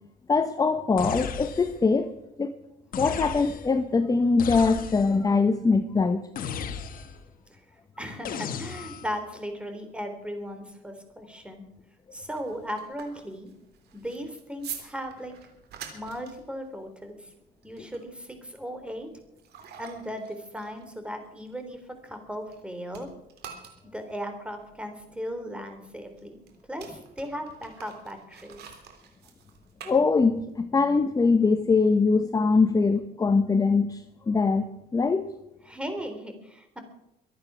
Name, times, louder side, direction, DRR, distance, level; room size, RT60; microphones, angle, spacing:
voice 1, 0.3-2.1 2.4-2.5 3.0-6.3 29.9-34.7 34.9-35.3, left 4 dB, 20° left, 9 dB, 0.9 m, -22 dB
sound 1, 1.0-1.9 2.9-3.8 4.4-5.3 6.4-7.3 8.2-9.2, left 7 dB, 55° left, 1.6 m, -35 dB
voice 2, 8.0-11.6 12.1-13.5 13.9-15.3 15.9-17.3 17.6-19.1 19.8-23.1 23.9-26.4 26.7-28.7 35.7-36.8, equal, 5° right, 7 dB, 3.4 m, -37 dB
sound 2, 12.1-22.6 22.9-30.6, right 8 dB, 75° right, 3.5 m, -47 dB
24.0 x 9.0 x 6.2 m, 0.82 s
cardioid pair, 110°, 17 cm